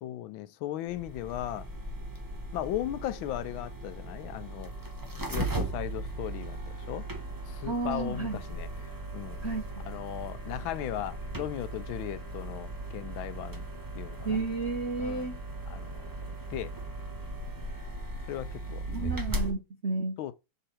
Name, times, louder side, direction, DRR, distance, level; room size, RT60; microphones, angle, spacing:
voice 1, 0.0-1.7 2.5-4.7 5.3-7.1 7.5-9.4 9.8-13.7 13.9-14.4 15.0-15.3 15.7-16.0 16.5-16.7 18.3-19.1 20.2-20.3, left 13 dB, 75° left, 1.3 m, -37 dB
sound 1, 0.9-19.5, right 2 dB, 25° right, 0.4 m, -38 dB
voice 2, 7.7-8.4 9.4-9.7 14.2-15.4 18.9-20.2, right 3 dB, 65° right, 0.6 m, -32 dB
6.6 x 3.9 x 4.2 m
omnidirectional pair, 2.3 m